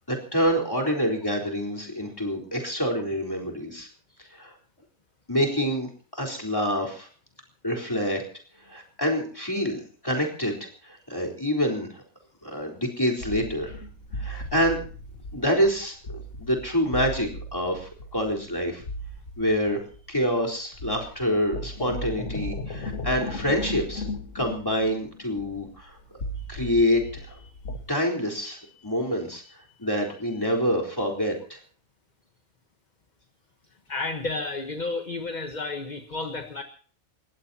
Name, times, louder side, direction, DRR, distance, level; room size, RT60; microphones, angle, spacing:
voice 1, 0.1-3.9 4.3-4.5 5.3-7.1 7.6-8.2 8.7-10.6 10.8-12.0 12.4-13.8 14.2-14.8 15.3-18.8 19.4-19.8 20.1-24.0 24.3-26.0 26.5-27.4 27.9-31.6, equal, 15° left, -1 dB, 4.0 m, -27 dB
sound 1, 13.2-20.4 20.7-27.8, left 1 dB, 65° left, 1.9 m, -37 dB
voice 2, 33.9-36.6, left 3 dB, 35° left, 6 dB, 1.3 m, -31 dB
30.0 x 16.0 x 2.9 m, 0.42 s
omnidirectional pair, 1.5 m